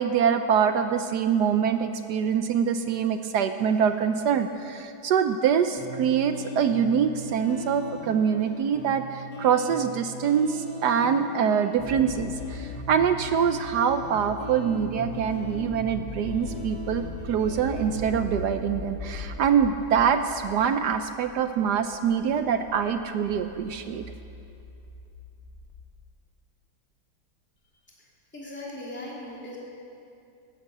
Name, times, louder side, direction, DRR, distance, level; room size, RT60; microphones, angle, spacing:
voice 1, 0.0-24.0, right 7 dB, 70° right, 8 dB, 1.0 m, -24 dB
sound 1, 5.8-20.8, left 2 dB, 65° left, 2.8 m, -40 dB
sound 2, 11.8-25.8, left 3 dB, 35° left, 1.5 m, -40 dB
voice 2, 28.0-29.6, left 1 dB, 5° left, -6 dB, 3.0 m, -39 dB
18.0 x 9.6 x 7.3 m, 2.6 s
omnidirectional pair, 2.3 m